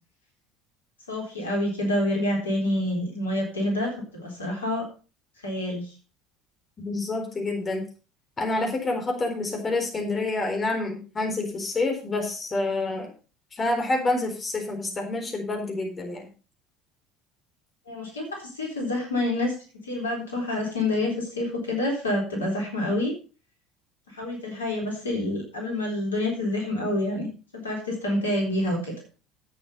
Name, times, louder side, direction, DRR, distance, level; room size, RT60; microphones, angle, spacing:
voice 1, 1.1-4.9 5.4-5.9 17.9-19.5 19.8-23.1 24.1-27.3 27.5-28.9, left 1 dB, 80° left, 0 dB, 3.9 m, -27 dB
voice 2, 6.8-7.8 8.4-13.1 13.5-16.3, left 2 dB, 25° left, 2 dB, 4.2 m, -28 dB
11.0 x 8.8 x 5.3 m, 0.35 s
figure-of-eight pair, 65°, 0 cm